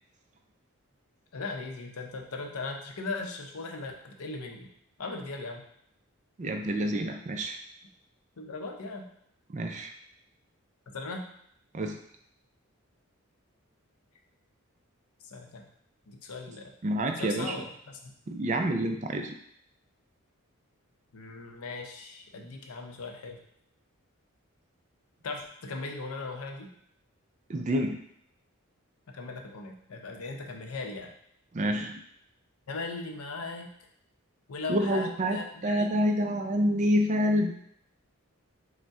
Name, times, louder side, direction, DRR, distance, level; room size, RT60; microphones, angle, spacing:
voice 1, 1.3-4.7 5.0-5.6 8.4-9.1 10.9-11.2 15.3-15.7 16.1-16.7 17.1-18.1 21.1-23.4 25.2-26.7 29.1-31.1 32.7-33.7 34.5-35.9, left 3 dB, 80° left, 3 dB, 0.6 m, -38 dB
voice 2, 6.4-7.6 9.5-9.9 11.7-12.0 16.8-17.6 18.3-19.3 27.5-28.0 31.5-32.0 34.7-37.5, equal, 35° right, 5 dB, 0.3 m, -28 dB
5.3 x 2.1 x 3.5 m, 0.69 s
head